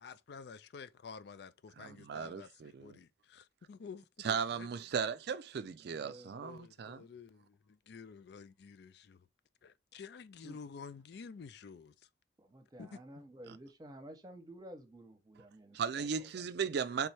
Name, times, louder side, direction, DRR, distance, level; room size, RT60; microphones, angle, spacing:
voice 1, 0.0-4.8 6.2-9.3 9.6-11.9 12.8-13.2, left 5 dB, 65° left, 0.4 m, -51 dB
voice 2, 1.8-3.0 4.2-7.0 15.7-17.1, right 6 dB, 65° right, 0.4 m, -36 dB
voice 3, 5.8-6.4 10.4-10.6 12.4-16.4, right 1 dB, 25° right, 0.9 m, -52 dB
3.5 x 3.2 x 4.3 m
head